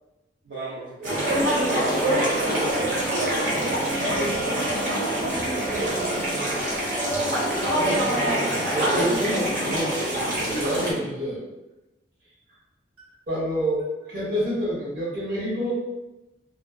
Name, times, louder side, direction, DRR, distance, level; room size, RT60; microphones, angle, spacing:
voice 1, 0.4-3.5 4.0-6.4 6.6-7.9, right 2 dB, 85° right, -10 dB, 0.6 m, -35 dB
sound 1, 1.0-10.9, right 1 dB, 45° right, 0.9 m, -25 dB
Trumpet, 2.4-8.9, right 3 dB, 70° left, 0.4 m, -38 dB
voice 2, 7.7-8.1 8.7-11.4 13.3-15.7, equal, 65° right, -8 dB, 1.2 m, -28 dB
2.4 x 2.3 x 2.3 m, 0.99 s
head